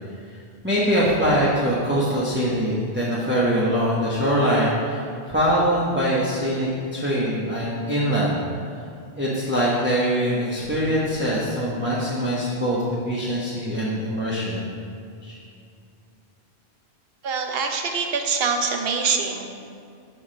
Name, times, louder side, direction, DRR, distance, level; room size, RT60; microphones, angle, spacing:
voice 1, 0.6-8.4 9.2-14.7 15.2-15.3, equal, 10° right, -8 dB, 0.9 m, -23 dB
voice 2, 17.2-19.5, right 5 dB, 70° right, 4 dB, 0.9 m, -24 dB
5.3 x 4.8 x 6.2 m, 2.4 s
omnidirectional pair, 1.0 m